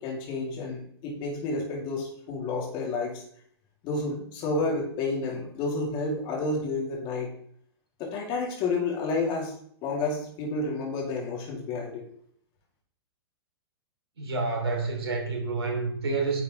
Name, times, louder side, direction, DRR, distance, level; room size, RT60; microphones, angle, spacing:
voice 1, 0.0-3.2 3.8-7.3 8.0-9.5 9.8-12.1, left 3 dB, 35° left, -2 dB, 3.0 m, -30 dB
voice 2, 14.2-16.4, right 3 dB, 70° right, 1 dB, 3.1 m, -28 dB
10.0 x 6.6 x 3.3 m, 0.64 s
figure-of-eight pair, 110°, 14 cm